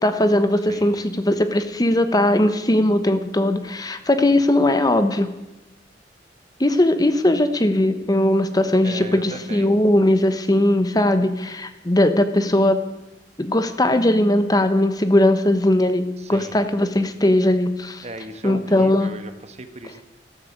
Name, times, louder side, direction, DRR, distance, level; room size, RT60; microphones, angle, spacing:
voice 1, 0.0-5.3 6.6-12.8 13.4-18.0 18.4-19.1, left 1 dB, 20° left, 9 dB, 0.9 m, -19 dB
voice 2, 0.7-1.0 4.2-4.3 8.8-9.7 16.2-16.7 18.0-20.0, right 2 dB, 40° right, 9 dB, 1.4 m, -37 dB
14.0 x 12.5 x 8.1 m, 0.99 s
head